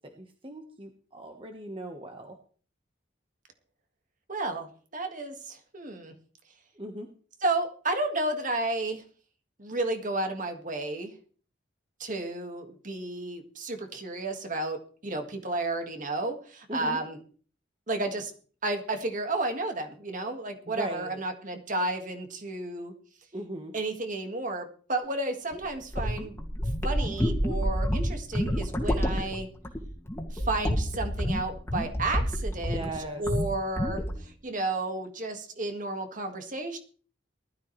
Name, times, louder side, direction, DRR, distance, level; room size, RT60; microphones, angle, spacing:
voice 1, 0.1-2.4 6.8-7.1 16.7-17.0 20.7-21.2 23.3-23.7 32.6-33.2, right 1 dB, 30° right, 3 dB, 1.4 m, -38 dB
voice 2, 4.3-6.1 7.4-9.0 9.6-11.1 12.0-17.2 17.9-18.3 18.6-22.9 23.7-26.4 26.8-29.5 30.3-32.9 33.2-36.8, right 2 dB, 45° right, 5 dB, 2.0 m, -32 dB
sound 1, 25.5-33.0 33.3-33.5 33.8-34.2, equal, 15° left, 2.3 m, -29 dB
19.5 x 13.0 x 3.3 m, 0.42 s
head